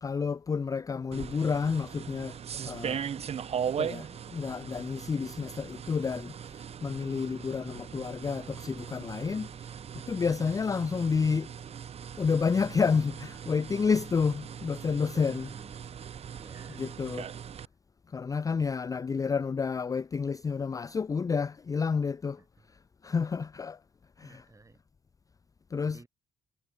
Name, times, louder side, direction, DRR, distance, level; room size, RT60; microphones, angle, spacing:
voice 1, 0.0-3.1 3.6-11.5 12.2-15.5 16.8-17.3 18.1-22.4 23.0-23.8 24.2-24.4 25.7-26.0, left 5 dB, 20° left, 0.4 m, -30 dB
sound 1, 1.1-17.7, right 8 dB, 40° right, 0.8 m, -39 dB
voice 2, 15.3-15.8 16.3-16.8 22.4-22.7 24.2-24.8 25.8-26.1, right 3 dB, 20° right, 6.5 m, -54 dB
supercardioid pair, 85°, 17 cm